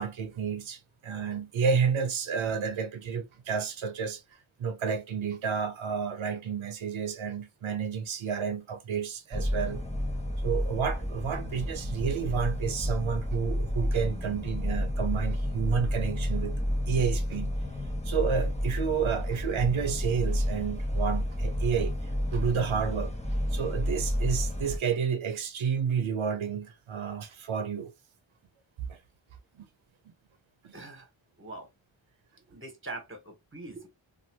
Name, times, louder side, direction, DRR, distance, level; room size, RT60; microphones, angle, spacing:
voice 1, 0.0-4.2 4.6-9.8 10.4-16.5 16.9-17.5 18.0-21.9 22.3-23.1 23.5-27.9 28.9-29.0 30.6-30.7, right 6 dB, 85° right, 0.7 m, -30 dB
sound 1, 9.3-24.8, equal, 15° left, 0.9 m, -30 dB
voice 2, 30.7-31.1 31.4-31.7 32.5-33.9, right 2 dB, 25° right, 1.3 m, -42 dB
2.7 x 2.6 x 2.8 m
wide cardioid pair, 65°, 47 cm